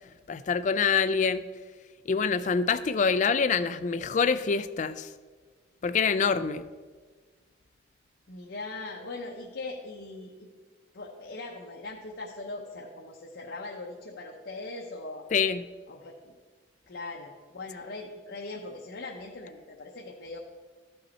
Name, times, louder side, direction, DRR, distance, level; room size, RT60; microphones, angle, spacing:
voice 1, 0.3-1.4 2.1-5.1 5.8-6.6 15.3-15.6, left 5 dB, 40° left, 13 dB, 0.3 m, -25 dB
voice 2, 8.3-10.5 10.9-15.3 15.9-16.3 16.9-20.4, left 2 dB, 65° left, -1 dB, 0.8 m, -40 dB
13.0 x 5.5 x 4.1 m, 1.5 s
head